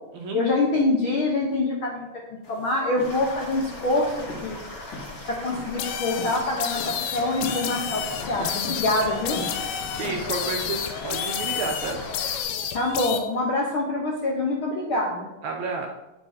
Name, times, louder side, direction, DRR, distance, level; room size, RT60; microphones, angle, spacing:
voice 1, 0.3-4.6 5.3-9.4 12.7-15.3, left 2 dB, 70° left, -2 dB, 1.2 m, -25 dB
sound 1, 2.4-10.9, left 2 dB, 55° left, 3.0 m, -41 dB
sound 2, 3.0-12.4, left 2 dB, 35° left, 1.6 m, -39 dB
sound 3, 5.8-13.2, left 9 dB, 85° left, 2.3 m, -31 dB
voice 2, 8.4-8.7 9.7-12.0 15.4-15.9, right 4 dB, 75° right, 1 dB, 1.8 m, -31 dB
9.2 x 8.3 x 2.8 m, 0.98 s
omnidirectional pair, 3.9 m